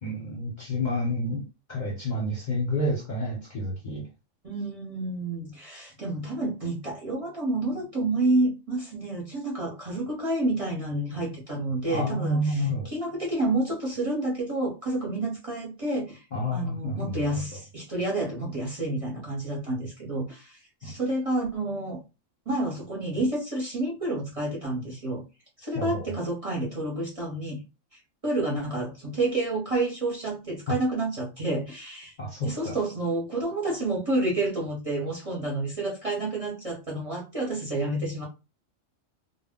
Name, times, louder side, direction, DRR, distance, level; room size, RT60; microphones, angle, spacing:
voice 1, 0.0-1.4 1.7-4.1 11.9-12.9 16.3-17.4 20.8-20.9 25.7-26.1 32.2-32.7, left 1 dB, 45° left, 0.7 m, -29 dB
voice 2, 4.4-16.2 16.5-22.0 22.5-25.2 25.6-27.6 27.9-32.1 32.4-38.3, right 2 dB, 30° right, 0.8 m, -29 dB
2.1 x 2.1 x 3.5 m
omnidirectional pair, 1.3 m